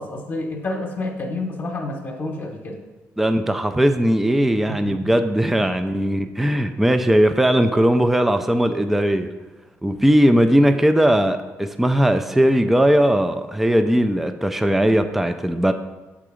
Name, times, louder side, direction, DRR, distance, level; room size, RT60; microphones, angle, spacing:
voice 1, 0.0-2.8 4.7-5.0 5.5-5.7, left 2 dB, 40° left, 1 dB, 0.9 m, -29 dB
voice 2, 3.2-9.3 9.8-15.7, equal, 5° right, 8 dB, 0.3 m, -18 dB
6.8 x 3.7 x 4.9 m, 1.2 s
cardioid pair, 100°, 5 cm